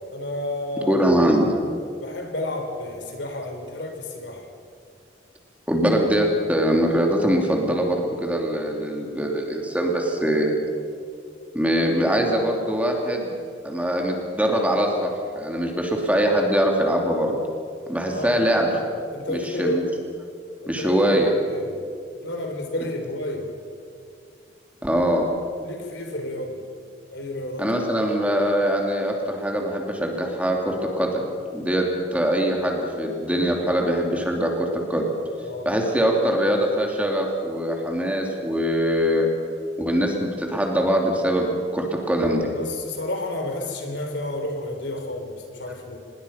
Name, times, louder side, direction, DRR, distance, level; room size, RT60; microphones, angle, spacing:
voice 1, 0.1-1.0 1.3-1.4 2.0-4.5 18.1-18.4 19.1-19.8 20.6-21.0 21.5-21.8 22.2-23.5 25.6-26.6 27.1-27.7 35.4-35.8 42.5-46.0, left 1 dB, 80° left, 4 dB, 3.7 m, -31 dB
voice 2, 0.9-1.5 5.7-10.6 11.5-13.3 13.6-17.4 17.9-18.7 19.3-19.8 20.7-21.3 24.8-25.3 27.6-31.2 31.5-35.1 35.6-39.3 39.8-42.5, equal, 10° right, 1 dB, 2.8 m, -22 dB
25.5 x 21.0 x 5.8 m, 2.3 s
head